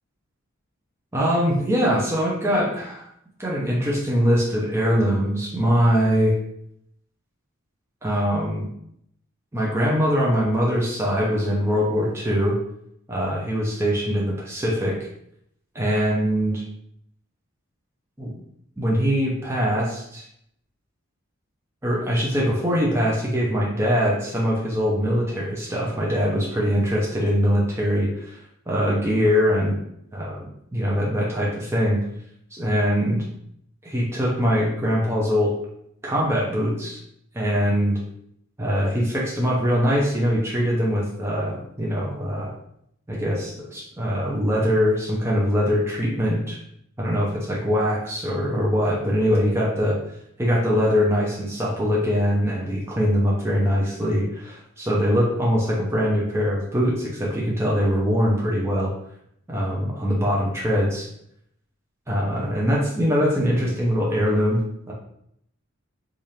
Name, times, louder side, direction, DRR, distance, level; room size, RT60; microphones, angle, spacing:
voice 1, 1.1-3.1 3.4-6.4 8.0-8.7 9.5-12.6 13.1-15.0 15.7-16.6 18.2-18.3 18.8-20.2 21.8-28.4 28.7-29.8 30.1-32.0 32.5-33.2 33.8-35.5 36.0-37.0 37.3-38.0 38.6-42.5 43.1-46.6 47.0-50.0 50.4-58.9 59.5-61.1 62.1-64.9, equal, 10° right, -4 dB, 0.6 m, -22 dB
3.2 x 2.5 x 4.2 m, 0.73 s
head